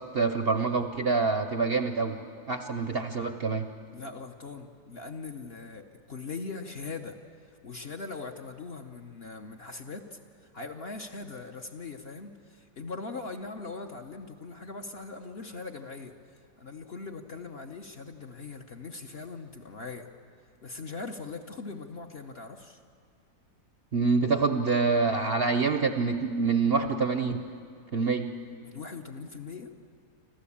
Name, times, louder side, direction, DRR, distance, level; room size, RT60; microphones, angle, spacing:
voice 1, 0.0-2.1 2.5-3.7 23.9-27.4 27.9-28.3, right 4 dB, 50° right, 8 dB, 0.8 m, -26 dB
voice 2, 3.9-7.2 7.6-16.1 16.6-20.1 20.6-22.8 28.6-29.7, left 4 dB, 45° left, 4 dB, 0.9 m, -41 dB
26.0 x 14.5 x 8.6 m, 2.2 s
omnidirectional pair, 1.8 m